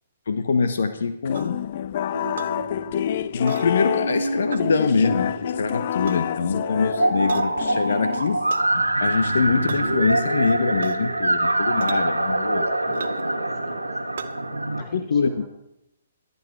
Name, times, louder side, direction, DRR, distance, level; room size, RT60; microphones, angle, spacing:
voice 1, 0.3-1.6 3.3-8.4 8.7-13.0 14.8-15.5, left 5 dB, 60° left, 10 dB, 1.1 m, -24 dB
sound 1, 1.3-8.6, left 10 dB, 45° left, 0.4 m, -28 dB
sound 2, 1.3-1.5 2.4-2.5 3.5-3.7 4.5-4.7 5.9-6.2 7.3-7.5 8.5-8.7 9.7-9.8 10.8-11.1 11.8-12.0 12.9-13.3 14.2-14.3, right 6 dB, 60° right, 0.9 m, -36 dB
sound 3, 2.1-14.8, right 2 dB, 85° right, 1.3 m, -26 dB
voice 2, 13.6-14.3 14.7-15.5, right 1 dB, 10° right, 2 dB, 3.3 m, -50 dB
23.0 x 8.2 x 4.7 m, 0.82 s
figure-of-eight pair, 125°, 0 cm